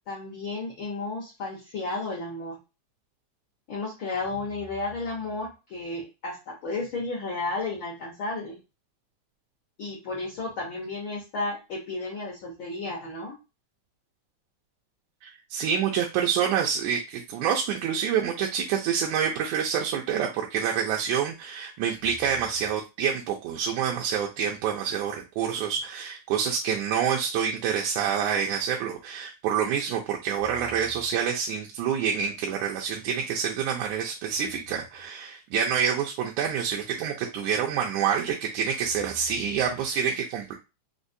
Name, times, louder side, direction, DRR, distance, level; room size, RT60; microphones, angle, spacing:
voice 1, 0.1-2.6 3.7-8.6 9.8-13.4, left 3 dB, 75° left, -2 dB, 1.1 m, -33 dB
voice 2, 15.2-40.5, right 7 dB, 80° right, 0 dB, 1.9 m, -27 dB
5.1 x 2.0 x 2.5 m, 0.27 s
omnidirectional pair, 3.5 m